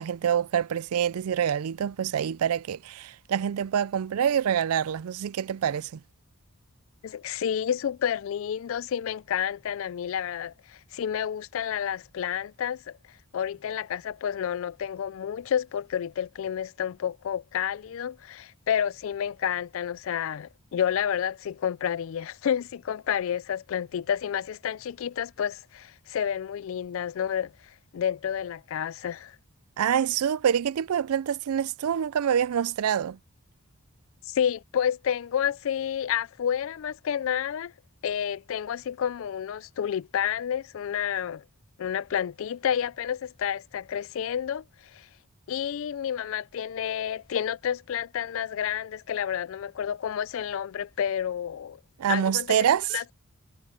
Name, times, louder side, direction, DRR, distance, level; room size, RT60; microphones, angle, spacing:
voice 1, 0.0-6.0 29.8-33.2 52.0-53.0, right 8 dB, 80° right, 0.4 m, -26 dB
voice 2, 7.0-13.0 13.3-27.5 27.9-29.4 34.3-37.7 38.0-41.4 41.8-44.6 44.9-45.1 45.5-51.8 52.1-52.6 52.9-53.0, left 9 dB, 60° left, 0.3 m, -30 dB
head